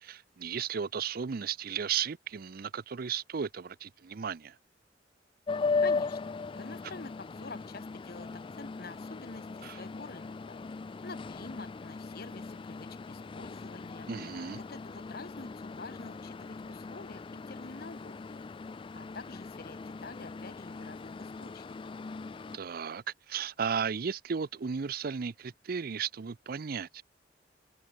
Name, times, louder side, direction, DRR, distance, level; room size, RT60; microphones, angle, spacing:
voice 1, 0.0-4.6 9.6-9.8 14.1-14.6 22.5-27.0, right 7 dB, 55° right, 0.5 m, -35 dB
sound 1, 5.5-22.6, left 4 dB, 30° left, 0.3 m, -38 dB
voice 2, 5.8-8.3 8.5-10.6 11.0-14.1 14.5-18.5 18.9-21.8, left 3 dB, 60° left, 1.7 m, -47 dB
head